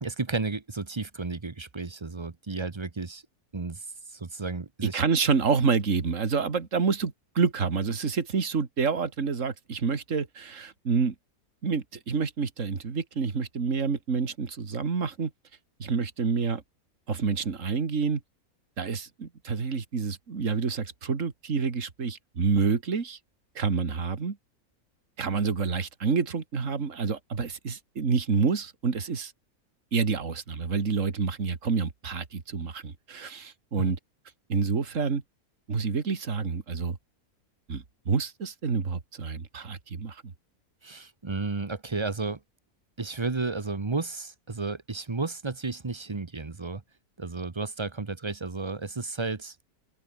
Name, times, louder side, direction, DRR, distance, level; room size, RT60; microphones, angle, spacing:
voice 1, 0.0-3.2 3.5-3.8 4.1-5.0 33.8-33.9 40.8-42.4 43.0-46.8 47.2-49.5, right 3 dB, 20° right, 0.9 m, -33 dB
voice 2, 4.8-11.1 11.6-15.3 15.8-16.6 17.1-18.2 18.8-23.2 23.6-24.4 25.2-29.3 29.9-34.0 34.5-35.2 35.7-37.0 37.7-40.2, right 5 dB, 55° right, 2.5 m, -28 dB
open air
omnidirectional pair, 1.6 m